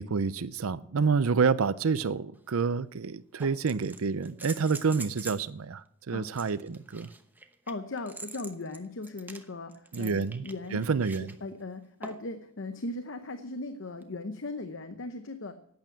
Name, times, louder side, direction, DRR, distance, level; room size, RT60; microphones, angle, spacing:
voice 1, 0.0-7.1 9.9-11.3, right 5 dB, 90° right, 0.6 m, -28 dB
sound 1, 2.3-2.4 3.4-5.5 6.3-11.4 12.0-12.4 14.0-14.1, right 3 dB, 10° right, 0.9 m, -45 dB
voice 2, 7.7-15.5, left 2 dB, 60° left, 0.8 m, -38 dB
11.5 x 8.9 x 9.0 m
head